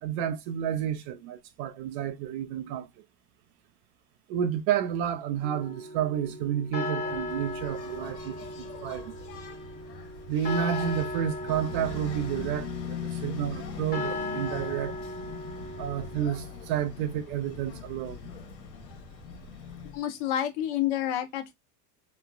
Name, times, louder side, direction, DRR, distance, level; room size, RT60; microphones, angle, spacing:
voice 1, 0.0-2.9 4.3-9.1 10.3-14.9 15.8-18.2, right 9 dB, 45° right, 0.5 m, -30 dB
sound 1, 5.4-16.6, left 2 dB, 20° left, 0.7 m, -37 dB
Engine, 7.0-20.0, left 5 dB, 85° left, 1.1 m, -41 dB
voice 2, 19.9-21.5, left 11 dB, 50° left, 0.8 m, -29 dB
3.0 x 2.1 x 2.4 m
hypercardioid pair, 100°, 50 cm